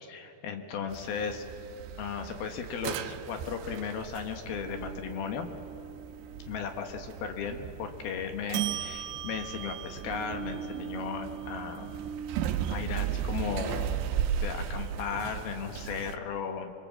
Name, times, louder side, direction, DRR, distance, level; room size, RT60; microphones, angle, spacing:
voice 1, 0.0-1.5 2.0-5.5 6.5-12.0 12.7-14.0 14.4-16.7, left 6 dB, 65° left, 6 dB, 2.9 m, -36 dB
sound 1, 0.9-16.2, right 9 dB, 80° right, 2.9 m, -36 dB
26.0 x 22.5 x 7.6 m, 3.0 s
omnidirectional pair, 5.2 m